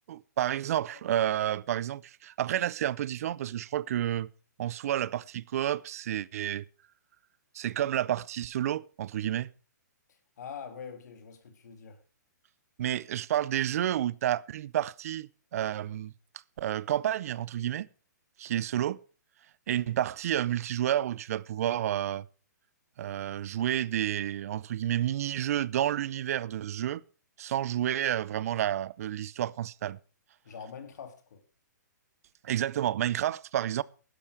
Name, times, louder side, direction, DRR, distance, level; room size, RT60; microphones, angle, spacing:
voice 1, 0.1-4.3 4.6-6.6 7.5-9.5 12.8-16.1 16.6-17.9 18.4-19.0 19.7-22.3 23.0-27.0 27.4-30.0 32.4-33.8, right 11 dB, 50° right, 0.6 m, -30 dB
voice 2, 10.1-12.0 30.4-31.4, left 6 dB, 65° left, 2.6 m, -44 dB
11.5 x 11.5 x 4.9 m
hypercardioid pair, 150°, 10 cm